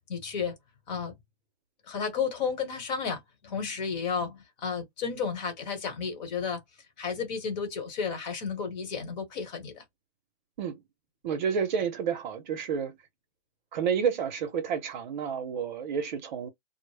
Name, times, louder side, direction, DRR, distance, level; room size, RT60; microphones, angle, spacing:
voice 1, 0.1-0.5 0.9-1.1 1.9-6.6 7.0-9.8, left 6 dB, 40° left, 1.1 m, -32 dB
voice 2, 11.2-12.9 13.7-16.5, right 7 dB, 45° right, 0.7 m, -30 dB
2.1 x 2.0 x 3.2 m
hypercardioid pair, 155°, 33 cm